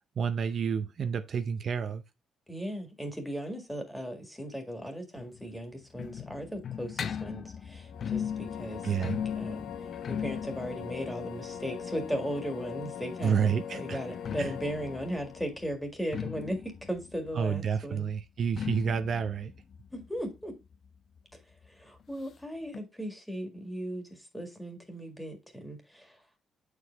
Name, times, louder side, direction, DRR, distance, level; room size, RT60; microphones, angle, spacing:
voice 1, 0.2-2.0 8.8-9.2 13.2-14.0 14.4-14.5 17.4-19.5, right 7 dB, 55° right, 0.6 m, -29 dB
voice 2, 2.5-18.1 19.9-20.5 21.3-21.4 21.7-26.2, equal, 5° left, 1.9 m, -37 dB
sound 1, 5.1-12.8 14.0-21.4 21.6-21.7 22.0-22.1 22.7-22.8, left 7 dB, 50° left, 0.4 m, -39 dB
sound 2, 7.8-15.6, left 8 dB, 80° left, 0.8 m, -41 dB
7.7 x 4.8 x 3.4 m
cardioid pair, 110°, 0 cm